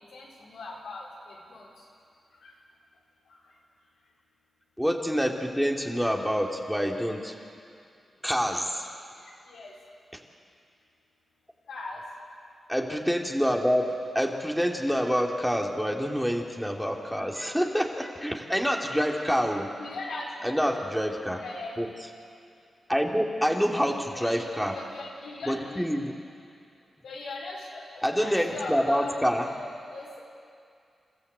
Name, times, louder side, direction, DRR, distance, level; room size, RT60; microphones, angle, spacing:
voice 1, 0.1-1.7 2.4-2.5 9.5-9.7 11.7-12.0 19.7-20.3 21.3-21.8 23.4-23.9 24.2-25.8 27.0-30.2, left 2 dB, 90° left, -3 dB, 4.5 m, -40 dB
voice 2, 4.8-7.3 8.2-8.8 12.7-19.7 20.4-21.4 21.8-21.9 22.9-24.7 25.5-26.1 28.0-29.5, equal, ahead, 1 dB, 2.7 m, -27 dB
28.5 x 14.5 x 8.1 m, 2.4 s
cardioid pair, 45°, 0 cm